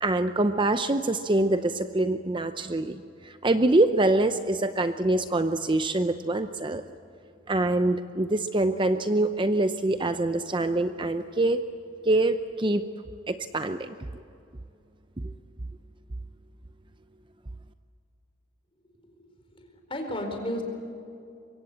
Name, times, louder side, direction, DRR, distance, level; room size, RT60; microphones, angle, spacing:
voice 1, 0.0-6.8 7.5-11.6 12.0-12.9 13.3-13.9, right 2 dB, 25° right, 9 dB, 0.6 m, -25 dB
voice 2, 19.5-20.6, left 1 dB, 25° left, 4 dB, 4.4 m, -33 dB
25.0 x 23.5 x 8.5 m, 2.8 s
head